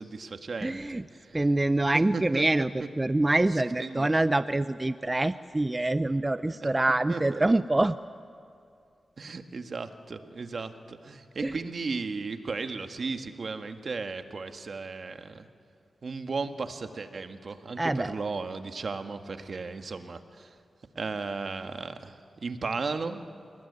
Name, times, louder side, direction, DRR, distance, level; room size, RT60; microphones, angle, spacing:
voice 1, 0.0-1.5 1.9-2.4 3.8-4.1 6.4-6.7 7.1-7.5 9.2-15.4 16.0-20.5 21.0-22.2 22.4-23.2, right 4 dB, 60° right, 7 dB, 1.8 m, -35 dB
voice 2, 0.6-1.0 1.3-7.9 11.4-11.5 17.8-18.1, right 2 dB, 25° right, 13 dB, 0.6 m, -25 dB
28.0 x 20.5 x 9.7 m, 2.5 s
cardioid pair, 65°, 0 cm